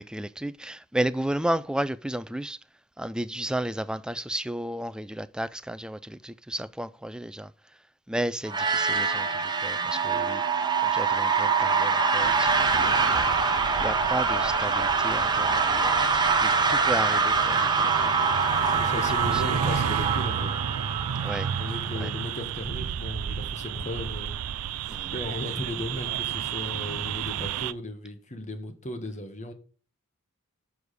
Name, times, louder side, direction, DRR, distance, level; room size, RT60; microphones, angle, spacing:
voice 1, 0.0-2.6 3.0-7.5 8.1-10.4 10.8-13.2 13.8-18.1 19.3-19.4 21.2-21.5 22.0-22.1 24.9-25.1, right 1 dB, 5° right, 0.3 m, -33 dB
sound 1, 8.5-22.2, right 4 dB, 20° right, 1.5 m, -24 dB
sound 2, 12.2-27.7, right 8 dB, 80° right, 0.4 m, -32 dB
voice 2, 18.7-20.5 21.6-24.3 25.0-29.5, left 1 dB, 35° left, 1.5 m, -36 dB
7.2 x 6.3 x 4.8 m
head